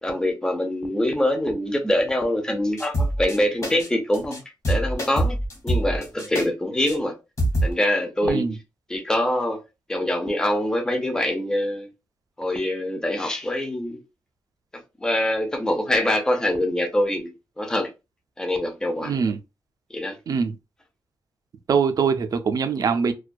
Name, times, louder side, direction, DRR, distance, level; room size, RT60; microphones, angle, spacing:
voice 1, 0.0-4.4 4.7-5.4 5.6-7.1 7.6-8.6 8.9-9.6 9.9-11.9 12.4-14.0 14.7-17.9 18.4-19.1 19.9-20.2, left 1 dB, 10° left, 0.5 m, -24 dB
sound 1, 2.8-3.4 3.6-3.9 4.1-4.4 4.6-6.4 6.9-7.0 7.4-7.7, right 1 dB, 45° left, 1.1 m, -24 dB
voice 2, 8.2-8.5 19.0-19.4 20.3-20.5 21.7-23.1, right 6 dB, 50° right, 0.3 m, -23 dB
2.2 x 2.2 x 2.5 m
wide cardioid pair, 125°, 8 cm